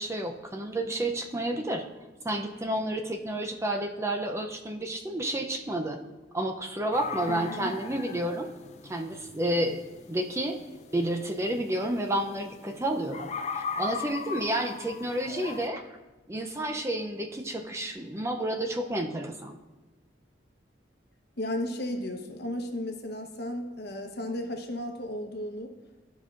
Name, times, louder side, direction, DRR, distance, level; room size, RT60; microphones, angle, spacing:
voice 1, 0.0-1.8 2.2-6.0 6.3-8.5 8.8-9.8 10.1-10.6 10.9-15.8 16.3-19.5, right 1 dB, 15° right, 4 dB, 0.5 m, -30 dB
sound 1, 6.9-15.7, left 5 dB, 40° left, 0.5 m, -40 dB
voice 2, 7.3-7.7 21.4-25.7, left 1 dB, 60° left, 4 dB, 1.0 m, -34 dB
13.0 x 5.2 x 2.4 m, 1.2 s
head